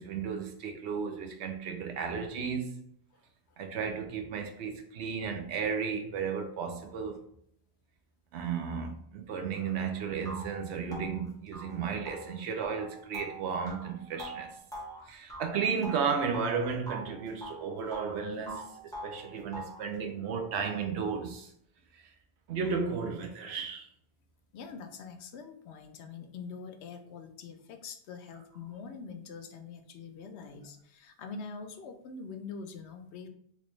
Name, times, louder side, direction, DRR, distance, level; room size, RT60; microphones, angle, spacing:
voice 1, 0.0-2.8 3.6-7.2 8.3-14.5 15.1-21.5 22.5-23.9, right 6 dB, 85° right, 0.9 m, -34 dB
sound 1, 9.7-9.8 10.2-16.6 16.9-18.2 18.5-19.9, right 1 dB, 5° left, 0.6 m, -44 dB
voice 2, 24.5-33.3, left 5 dB, 90° left, 0.9 m, -44 dB
3.3 x 2.9 x 3.0 m
omnidirectional pair, 1.1 m